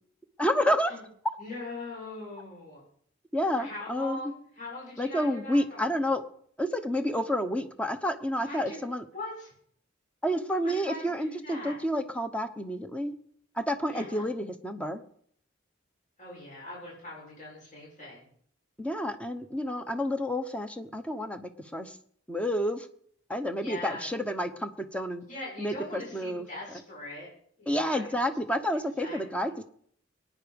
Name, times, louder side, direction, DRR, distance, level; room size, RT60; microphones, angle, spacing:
voice 1, 0.4-0.9 3.3-4.2 5.0-6.2 6.6-9.0 10.2-13.1 13.6-15.0 18.8-22.0 22.3-22.9 23.3-25.2 25.6-26.5 27.7-29.7, equal, 5° left, 8 dB, 1.0 m, -29 dB
voice 2, 1.4-2.8 3.6-5.9 8.4-8.8 9.1-9.5 10.6-11.8 13.9-14.3 16.2-18.3 23.6-24.1 25.3-27.3 27.6-28.1 29.0-29.2, left 2 dB, 40° left, -5 dB, 6.8 m, -41 dB
22.0 x 9.7 x 5.3 m, 0.63 s
head